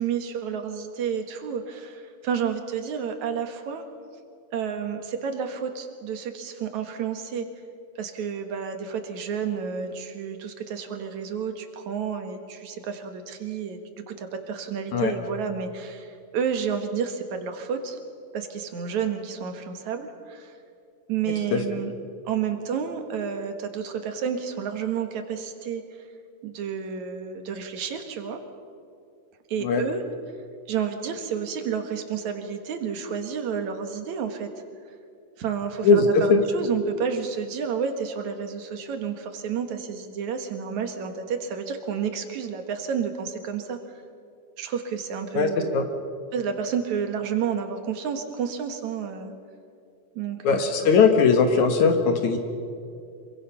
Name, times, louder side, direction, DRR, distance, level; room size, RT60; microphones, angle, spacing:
voice 1, 0.0-3.8 4.5-7.5 8.0-13.8 14.1-18.0 18.3-20.5 21.1-21.9 22.3-25.8 26.4-28.4 29.5-30.0 30.7-34.5 35.4-44.0 44.6-45.8 46.3-49.3 50.2-50.9, right 7 dB, 65° right, 6 dB, 2.8 m, -30 dB
voice 2, 35.8-36.4 45.4-45.8 50.4-52.4, left 4 dB, 70° left, 6 dB, 2.6 m, -19 dB
26.5 x 23.0 x 5.7 m, 2.4 s
omnidirectional pair, 3.6 m